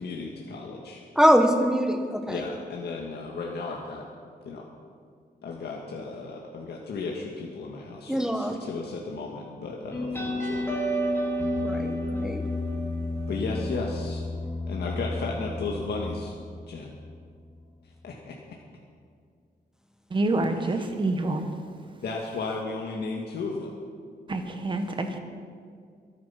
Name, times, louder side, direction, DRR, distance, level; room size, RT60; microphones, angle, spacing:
voice 1, 0.0-1.0 2.3-4.0 4.4-4.6 5.4-10.8 13.3-14.2 14.7-16.3 16.7-16.9 18.0-18.3 20.6-20.9 22.0-23.8, left 3 dB, 80° left, -2 dB, 1.8 m, -34 dB
voice 2, 1.2-2.4 8.1-8.5 11.6-12.4, equal, 5° right, 4 dB, 0.9 m, -23 dB
sound 1, 9.9-17.1, left 1 dB, 15° left, 3.4 m, -31 dB
voice 3, 20.1-21.4 24.3-25.2, right 2 dB, 30° right, 6 dB, 1.3 m, -27 dB
23.0 x 9.4 x 5.9 m, 2.1 s
wide cardioid pair, 170°, 17 cm